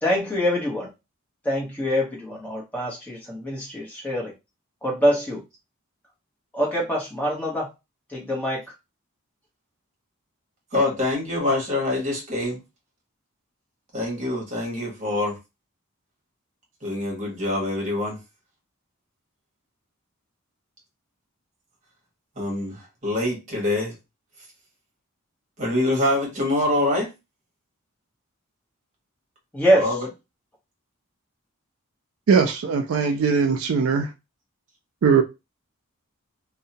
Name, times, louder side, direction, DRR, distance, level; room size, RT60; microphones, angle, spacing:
voice 1, 0.0-0.9 1.4-4.3 4.8-5.4 6.5-7.6 8.1-8.6 29.5-29.9, equal, 5° left, 1.0 m, -24 dB
voice 2, 10.7-12.6 13.9-15.4 16.8-18.2 22.4-23.9 25.6-27.1 29.7-30.1, left 2 dB, 35° right, 1.2 m, -25 dB
voice 3, 32.3-34.1 35.0-35.2, right 5 dB, 70° right, 0.4 m, -20 dB
2.7 x 2.1 x 2.7 m
head